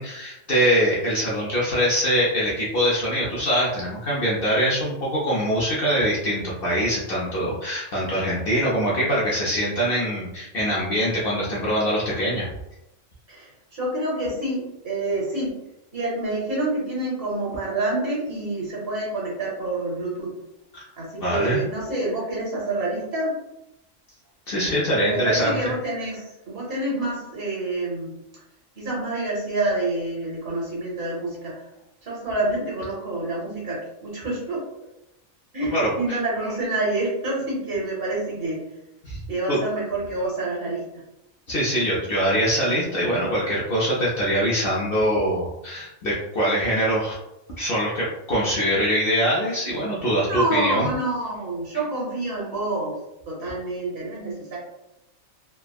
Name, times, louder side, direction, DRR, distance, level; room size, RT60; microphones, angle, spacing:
voice 1, 0.0-12.5 20.7-20.8 21.2-21.6 24.5-25.6 35.7-36.2 39.0-39.2 39.5-39.6 41.5-47.1 47.6-50.9, equal, 55° left, -6 dB, 0.7 m, -23 dB
voice 2, 13.3-15.5 15.9-20.3 21.0-23.3 25.1-28.4 28.8-31.6 32.0-34.6 35.5-38.6 39.3-41.0 50.2-52.9 53.3-54.6, right 2 dB, 50° right, -4 dB, 1.0 m, -27 dB
3.4 x 2.0 x 2.3 m, 0.89 s
omnidirectional pair, 1.4 m